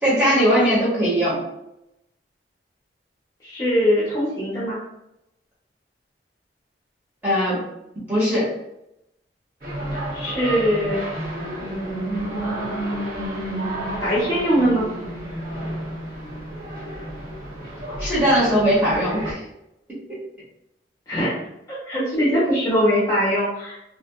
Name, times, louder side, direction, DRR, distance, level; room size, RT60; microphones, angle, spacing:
voice 1, 0.0-1.4 7.2-7.6 8.1-8.5 18.0-19.4 21.9-22.2, equal, 10° right, -9 dB, 1.2 m, -20 dB
voice 2, 3.4-4.8 10.1-11.0 11.6-12.3 14.0-14.8 21.1-21.3 21.7-23.8, equal, 20° left, -8 dB, 0.7 m, -22 dB
sound 1, 9.6-19.3, right 1 dB, 50° right, 0.8 m, -30 dB
2.7 x 2.4 x 2.4 m, 0.84 s
head